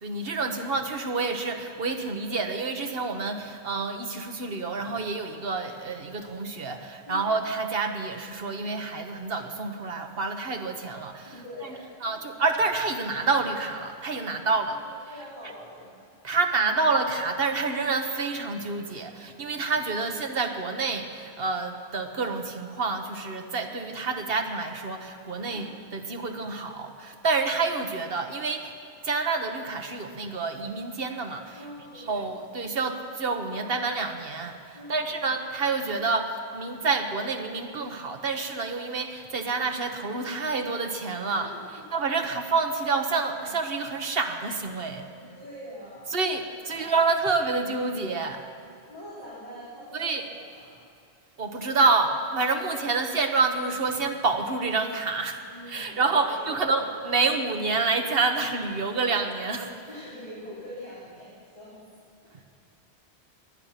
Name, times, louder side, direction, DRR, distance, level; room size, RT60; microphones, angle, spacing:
voice 1, 0.0-11.3 12.0-14.8 16.2-28.7 29.0-31.6 31.9-41.5 41.9-45.1 46.1-48.4 49.9-50.2 51.4-55.4 55.7-59.8, right 4 dB, 65° right, 5 dB, 1.3 m, -28 dB
voice 2, 7.1-7.4 11.2-12.2 14.2-16.0 16.3-16.4 25.5-25.7 31.6-32.3 34.7-35.3 41.3-41.7 45.1-46.2 46.7-46.9 48.9-50.8 52.6-52.9 55.5-56.9 59.9-61.8 62.2-62.4, equal, 40° left, -10 dB, 3.8 m, -44 dB
19.0 x 11.5 x 5.8 m, 2.5 s
omnidirectional pair, 1.1 m